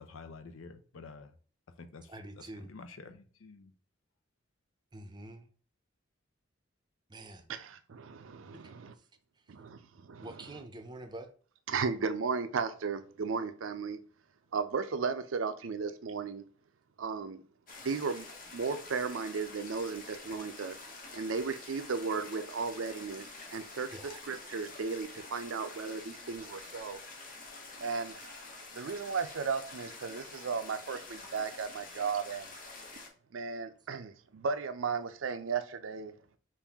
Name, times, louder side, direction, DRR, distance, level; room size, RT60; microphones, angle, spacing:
voice 1, 0.0-1.3 1.8-2.1 2.6-3.7, left 4 dB, 80° left, 0.6 m, -49 dB
voice 2, 2.1-2.7 4.9-5.5 7.1-7.5 8.5-9.0 10.2-11.3 23.7-24.2, right 2 dB, 20° right, 0.6 m, -47 dB
voice 3, 7.5-8.9 9.5-9.8 10.1-10.3 11.7-14.0 14.5-16.4 17.0-17.4 17.8-20.7 21.1-23.9 24.3-27.0 27.8-28.4 28.7-32.5 33.3-36.1, right 5 dB, 75° right, 0.5 m, -35 dB
sound 1, 17.7-33.1, left 3 dB, 45° left, 1.0 m, -48 dB
5.4 x 2.6 x 3.5 m
head